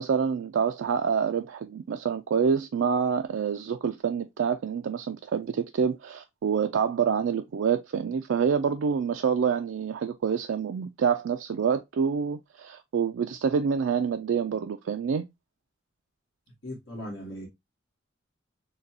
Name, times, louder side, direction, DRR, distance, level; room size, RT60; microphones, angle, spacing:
voice 1, 0.0-15.3, right 6 dB, 75° right, 0.4 m, -27 dB
voice 2, 16.6-17.5, equal, 80° left, 1.6 m, -38 dB
6.5 x 2.3 x 2.7 m
head